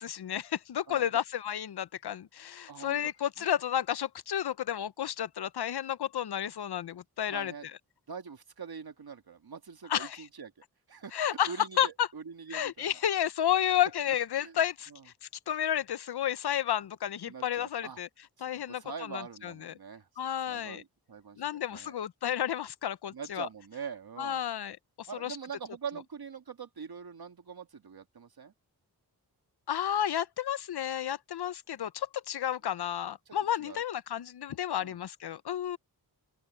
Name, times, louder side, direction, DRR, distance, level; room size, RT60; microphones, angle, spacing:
voice 1, 0.0-7.8 9.9-10.2 11.1-12.1 12.5-18.1 18.4-19.7 20.2-20.8 21.4-23.5 24.2-25.4 29.7-35.8, left 10 dB, 80° left, 0.7 m, -32 dB
voice 2, 0.9-1.2 2.7-3.0 3.4-3.5 7.3-7.7 8.1-10.5 10.9-12.9 14.1-14.6 14.9-15.0 17.3-18.0 18.5-20.1 20.5-21.9 23.1-24.4 25.1-28.5 33.3-33.8 34.8-35.0, right 6 dB, 70° right, 2.2 m, -44 dB
open air
wide cardioid pair, 85°, 39 cm